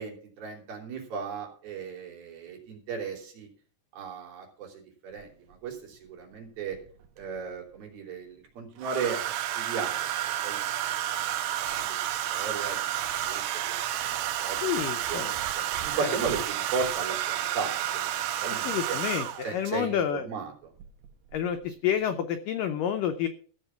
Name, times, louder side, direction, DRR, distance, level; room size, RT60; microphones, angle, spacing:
voice 1, 0.0-3.5 3.9-6.8 7.2-10.1 10.4-10.6 11.4-13.0 13.3-17.8 18.0-19.0 19.4-20.7, right 5 dB, 60° right, 1 dB, 4.8 m, -36 dB
Domestic sounds home sounds, 5.2-5.3 6.7-7.4 8.8-19.6 20.8-21.1 21.3-21.7, right 12 dB, 85° right, 3.1 m, -31 dB
voice 2, 14.6-15.3 16.0-16.2 18.6-20.2 21.3-23.3, left 9 dB, 80° left, 8 dB, 2.0 m, -29 dB
15.0 x 7.0 x 5.8 m, 0.43 s
omnidirectional pair, 4.9 m